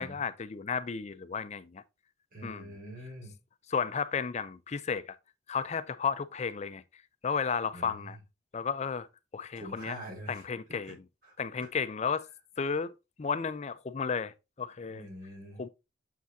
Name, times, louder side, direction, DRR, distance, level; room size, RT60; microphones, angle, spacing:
voice 1, 0.0-1.8 2.4-2.7 3.7-5.2 5.5-6.8 7.2-8.2 8.5-9.1 9.3-10.0 10.3-11.0 11.4-12.3 12.6-12.9 13.2-15.1 15.6-15.7, left 6 dB, 40° left, 0.5 m, -33 dB
voice 2, 2.3-3.4 7.7-8.2 9.5-10.4 10.8-10.9 11.2-11.7 14.9-15.6, right 1 dB, 55° right, 4.7 m, -45 dB
7.4 x 5.9 x 2.7 m
head